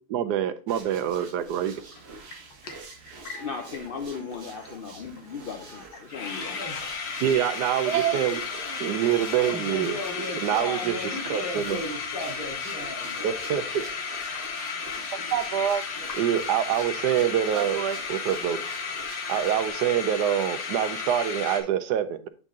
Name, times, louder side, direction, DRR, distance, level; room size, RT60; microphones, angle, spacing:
voice 1, 0.1-1.8 7.2-10.0 10.4-11.0 11.3-11.8 13.2-13.8 15.1-15.8 16.1-18.6 19.3-22.3, right 10 dB, 85° right, 11 dB, 1.2 m, -26 dB
sound 1, 0.7-19.7, right 4 dB, 45° right, 1.1 m, -47 dB
sound 2, 1.9-2.0 2.3-4.1 4.3-4.4 4.6-4.9 5.2-5.3 5.6-5.7 5.9-21.6, left 5 dB, 90° left, 1.6 m, -34 dB
voice 2, 3.1-6.9, left 6 dB, 60° left, 4 dB, 0.6 m, -37 dB
voice 3, 6.5-6.8 9.4-13.3, left 1 dB, 35° left, -3 dB, 2.5 m, -35 dB
8.3 x 4.0 x 3.6 m, 0.38 s
omnidirectional pair, 1.7 m